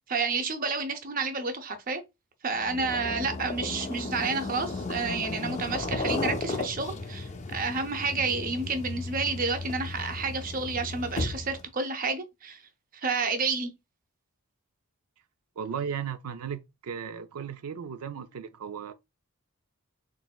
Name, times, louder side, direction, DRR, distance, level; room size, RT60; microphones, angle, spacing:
voice 1, 0.1-2.0 2.4-12.6 12.9-13.7, right 4 dB, 40° right, 0.6 m, -30 dB
sound 1, 2.5-11.7, left 3 dB, 30° left, 0.4 m, -35 dB
voice 2, 15.6-18.9, right 7 dB, 80° right, 0.4 m, -36 dB
3.9 x 3.7 x 2.3 m
head